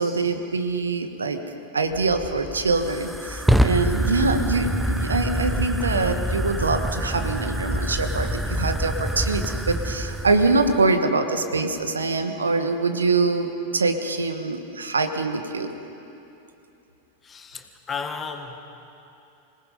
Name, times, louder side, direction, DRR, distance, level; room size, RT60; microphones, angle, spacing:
voice 1, 0.0-1.4 1.7-15.7, right 3 dB, 75° right, 7 dB, 1.4 m, -24 dB
Fire, 1.9-10.9, equal, 5° right, 0.9 m, -26 dB
voice 2, 17.2-18.6, left 5 dB, 20° left, 6 dB, 1.7 m, -34 dB
26.0 x 18.5 x 5.5 m, 2.9 s
figure-of-eight pair, 90°, 0 cm